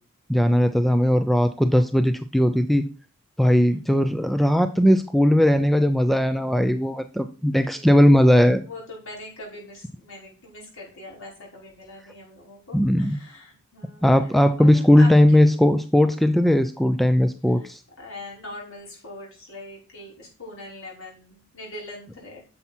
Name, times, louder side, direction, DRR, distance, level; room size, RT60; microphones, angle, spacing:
voice 1, 0.3-2.9 3.4-8.6 12.7-13.2 14.0-17.8, left 1 dB, ahead, 8 dB, 0.5 m, -18 dB
voice 2, 3.7-4.1 7.6-8.0 8.6-15.5 17.6-17.7 18.0-22.4, left 2 dB, 65° left, -3 dB, 5.6 m, -42 dB
9.6 x 7.0 x 4.5 m, 0.36 s
head